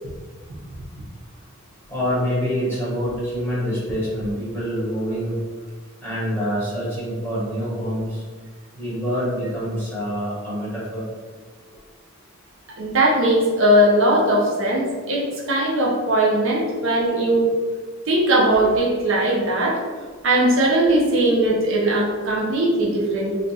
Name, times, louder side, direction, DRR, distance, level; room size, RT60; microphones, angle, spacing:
voice 1, 1.9-5.3 6.0-8.2 8.7-11.0, equal, 10° left, -10 dB, 1.1 m, -26 dB
voice 2, 12.8-17.5 18.1-19.8 20.2-23.4, right 1 dB, 70° right, -2 dB, 0.6 m, -19 dB
2.5 x 2.3 x 4.0 m, 1.5 s
head